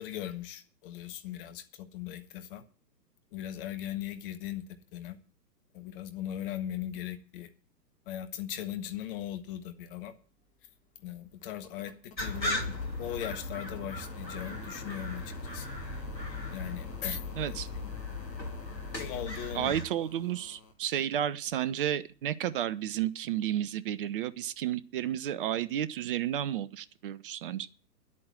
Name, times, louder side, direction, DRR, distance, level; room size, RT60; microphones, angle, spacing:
voice 1, 0.0-2.6 3.3-5.2 5.7-7.5 8.0-10.1 11.0-15.7 16.5-18.0 18.9-19.7, left 11 dB, 30° left, 1.5 m, -39 dB
sound 1, 9.9-20.7 22.2-22.3, left 4 dB, 15° left, 1.8 m, -54 dB
sound 2, 12.2-19.8, left 2 dB, 85° left, 2.6 m, -37 dB
voice 2, 17.0-17.7 19.5-27.7, right 11 dB, 35° right, 0.8 m, -32 dB
10.5 x 8.6 x 7.8 m
figure-of-eight pair, 120°, 50 cm